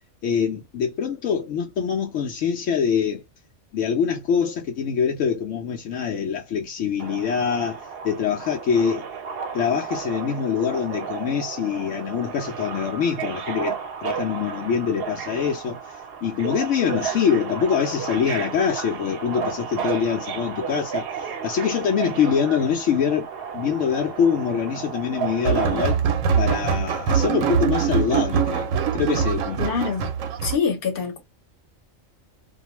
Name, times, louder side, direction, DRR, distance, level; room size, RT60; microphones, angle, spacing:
voice 1, 0.2-3.2 3.7-9.1 9.5-23.3 23.5-26.0 26.4-29.6, left 7 dB, 75° left, 0.9 m, -24 dB
Subway metro underground, 7.0-26.0, right 7 dB, 60° right, 0.7 m, -33 dB
sound 1, 25.4-30.6, right 7 dB, 90° right, 1.0 m, -23 dB
voice 2, 29.6-30.1 30.4-31.2, left 6 dB, 50° left, 1.0 m, -25 dB
2.5 x 2.3 x 2.9 m
omnidirectional pair, 1.3 m